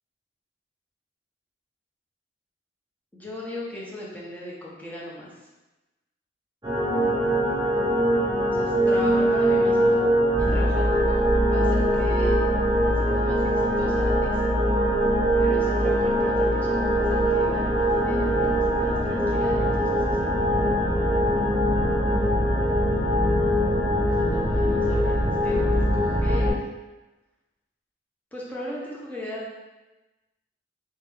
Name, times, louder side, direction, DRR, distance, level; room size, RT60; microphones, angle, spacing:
voice 1, 3.1-5.3 8.5-10.1 10.4-12.4 12.8-14.4 15.4-20.3 24.1-26.6 28.3-29.5, left 1 dB, 10° left, -6 dB, 0.8 m, -38 dB
sound 1, 6.6-26.5, equal, 20° right, 0.8 m, -22 dB
3.5 x 3.3 x 3.4 m, 1.1 s
head